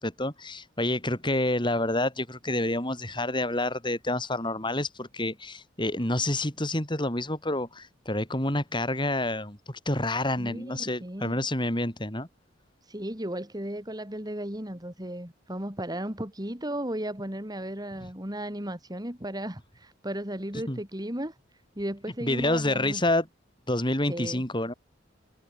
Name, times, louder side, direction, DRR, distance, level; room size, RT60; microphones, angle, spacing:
voice 1, 0.0-12.3 18.0-18.1 20.5-20.8 22.2-23.3 23.7-24.7, left 1 dB, 25° left, 6.8 m, -28 dB
voice 2, 10.4-11.4 12.9-21.3 21.8-23.0 24.1-24.4, right 1 dB, 20° right, 3.9 m, -35 dB
head